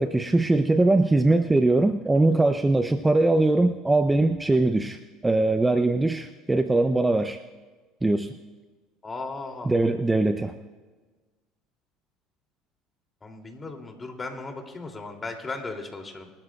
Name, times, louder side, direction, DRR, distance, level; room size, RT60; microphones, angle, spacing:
voice 1, 0.0-7.4 8.0-8.3 9.7-10.5, right 2 dB, 15° right, 9 dB, 0.6 m, -21 dB
voice 2, 9.0-9.9 13.2-16.3, left 3 dB, 25° left, 3 dB, 2.8 m, -36 dB
24.0 x 13.0 x 2.4 m, 1.3 s
hypercardioid pair, 75°, 0 cm